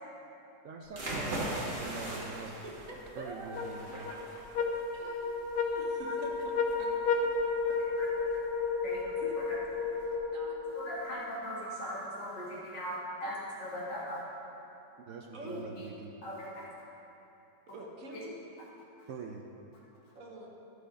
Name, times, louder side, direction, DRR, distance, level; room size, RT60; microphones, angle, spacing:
voice 1, 0.6-2.6 3.2-4.1 15.1-16.1 19.1-19.5, right 4 dB, 70° right, 2 dB, 0.7 m, -43 dB
sound 1, 0.9-10.2, right 1 dB, 30° right, 1.5 m, -42 dB
voice 2, 2.4-3.6 3.9-4.3 4.7-5.4 5.7-6.5 6.8-7.3 7.7-7.8 9.0-9.4 10.3-10.8 15.3-15.6 17.7-18.4 20.1-20.5, right 1 dB, 50° right, -1 dB, 1.4 m, -46 dB
sound 2, 3.6-11.1, left 4 dB, 70° left, 1.1 m, -32 dB
voice 3, 10.7-14.2 15.5-15.9 16.2-16.6, equal, 85° left, -6 dB, 2.7 m, -39 dB
11.5 x 6.6 x 5.0 m, 2.9 s
omnidirectional pair, 1.9 m